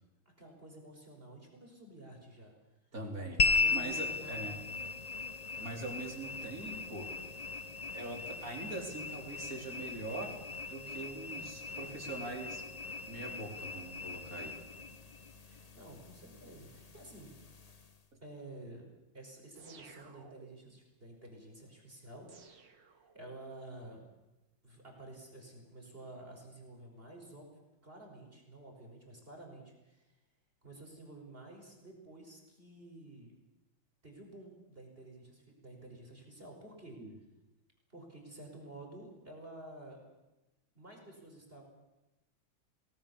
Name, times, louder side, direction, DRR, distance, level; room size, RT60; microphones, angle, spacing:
voice 1, 0.4-2.5 3.1-4.6 15.5-17.3 18.2-18.9 19.1-24.0 24.6-30.2 30.6-33.3 34.0-37.0 37.9-40.0 40.7-41.6, right 1 dB, 25° right, 1 dB, 5.5 m, -51 dB
voice 2, 2.9-3.4 3.7-4.6 5.6-7.1 7.9-10.3 10.7-12.6 13.1-14.6 37.0-37.1, right 2 dB, 40° right, 1 dB, 4.6 m, -42 dB
sound 1, 3.4-18.0, left 4 dB, 30° left, 0.7 m, -38 dB
sound 2, 19.6-20.8 22.3-23.6, right 5 dB, 60° right, 2.5 m, -57 dB
30.0 x 19.0 x 7.1 m, 1.0 s
omnidirectional pair, 2.2 m